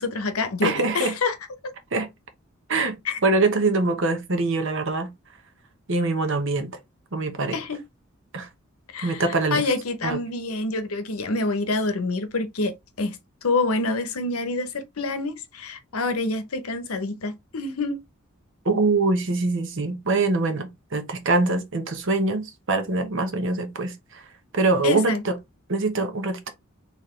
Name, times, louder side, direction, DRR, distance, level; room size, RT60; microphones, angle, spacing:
voice 1, 0.0-1.4 3.0-3.2 7.5-7.8 8.9-9.2 9.5-18.0 24.8-25.2, left 3 dB, 85° left, 0.9 m, -27 dB
voice 2, 0.6-1.2 1.9-2.1 2.7-3.0 3.2-5.1 5.9-6.8 7.1-7.6 8.3-8.5 9.0-9.6 10.0-10.2 18.6-24.2 24.5-25.4 25.7-26.5, right 3 dB, 60° right, 1.0 m, -24 dB
4.2 x 3.6 x 3.1 m
head